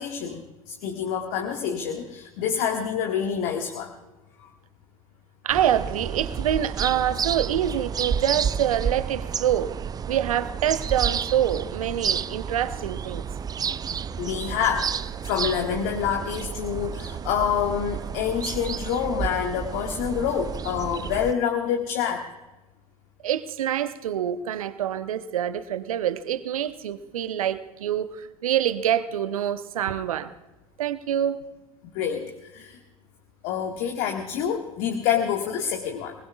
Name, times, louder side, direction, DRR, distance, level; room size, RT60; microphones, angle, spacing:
voice 1, 0.0-3.9 14.2-22.2 31.9-32.8 33.4-36.1, left 8 dB, 55° left, 1.8 m, -27 dB
voice 2, 5.4-13.2 23.2-30.3 30.8-31.4, right 10 dB, 75° right, 0.9 m, -26 dB
sound 1, 5.5-21.3, right 7 dB, 20° right, 0.4 m, -31 dB
24.0 x 20.5 x 2.4 m
figure-of-eight pair, 70°, 18 cm